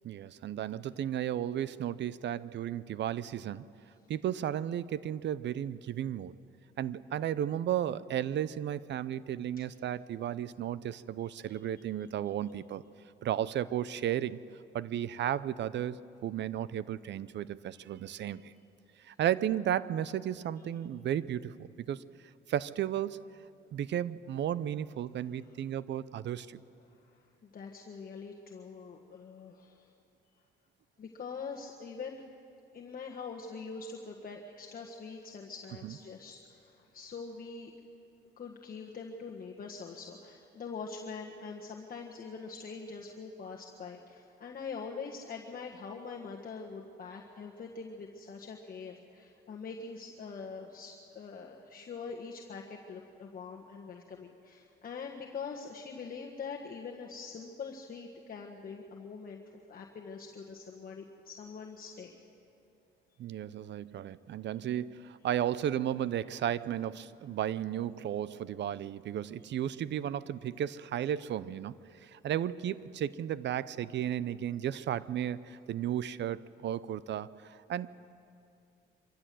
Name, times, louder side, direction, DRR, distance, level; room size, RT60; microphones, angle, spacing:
voice 1, 0.0-3.7 4.1-6.3 6.8-12.8 13.2-14.4 14.7-18.5 19.0-22.0 22.5-23.2 23.7-26.6 35.8-35.9 63.2-71.7 72.0-78.0, right 10 dB, 65° right, 18 dB, 0.6 m, -34 dB
voice 2, 27.1-29.9 31.0-32.2 32.7-37.7 38.4-59.4 59.7-62.2, left 5 dB, 45° left, -1 dB, 1.5 m, -44 dB
25.0 x 14.0 x 7.7 m, 2.6 s
cardioid pair, 90°, 20 cm